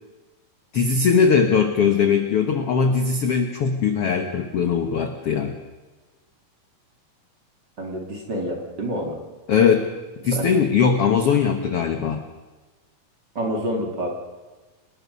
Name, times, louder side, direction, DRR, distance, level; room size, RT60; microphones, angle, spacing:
voice 1, 0.7-5.6 9.5-9.8 10.2-12.2, left 6 dB, 60° left, 6 dB, 1.6 m, -20 dB
voice 2, 7.8-9.2 10.2-10.5 13.3-14.1, equal, 30° right, 1 dB, 2.8 m, -28 dB
28.0 x 19.5 x 5.4 m, 1.2 s
omnidirectional pair, 4.2 m